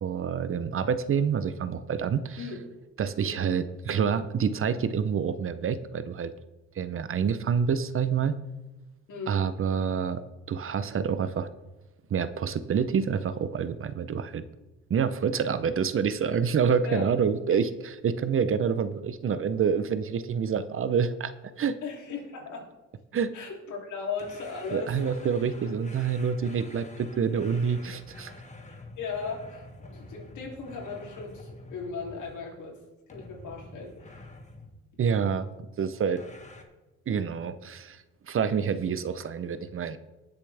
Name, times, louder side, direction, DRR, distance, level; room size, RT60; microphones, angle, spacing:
voice 1, 0.0-2.4 3.0-6.3 6.8-8.4 9.3-10.2 10.5-11.5 12.1-14.4 14.9-21.3 21.6-21.8 23.1-23.3 24.7-28.3 35.0-35.5 35.8-36.2 37.1-40.0, right 6 dB, 45° right, 13 dB, 0.7 m, -27 dB
voice 2, 21.8-22.7 23.3-25.3 28.6-32.8 33.1-34.2, left 5 dB, 75° left, -1 dB, 3.1 m, -37 dB
sound 1, 24.2-32.7 33.1-34.8 36.2-36.6, left 2 dB, 25° left, 1.6 m, -47 dB
20.0 x 6.9 x 3.4 m, 1.1 s
cardioid pair, 90°, 30 cm